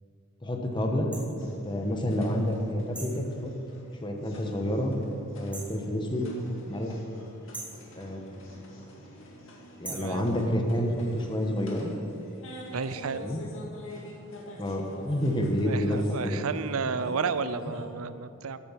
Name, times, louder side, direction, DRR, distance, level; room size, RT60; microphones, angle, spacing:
voice 1, 0.4-1.4 1.6-3.5 4.0-5.0 5.3-6.3 6.7-6.9 7.9-9.0 9.8-11.9 13.2-13.4 14.6-16.4, equal, 20° left, 3 dB, 1.3 m, -29 dB
sound 1, 1.1-1.3 2.9-3.2 5.5-5.8 7.5-7.8 9.8-10.2, right 2 dB, 5° right, 1.9 m, -40 dB
sound 2, 1.3-17.9, left 1 dB, 65° left, 2.2 m, -47 dB
voice 2, 9.9-10.3 12.7-13.3 15.7-18.6, right 5 dB, 85° right, 13 dB, 0.6 m, -32 dB
14.5 x 8.8 x 5.9 m, 2.6 s
head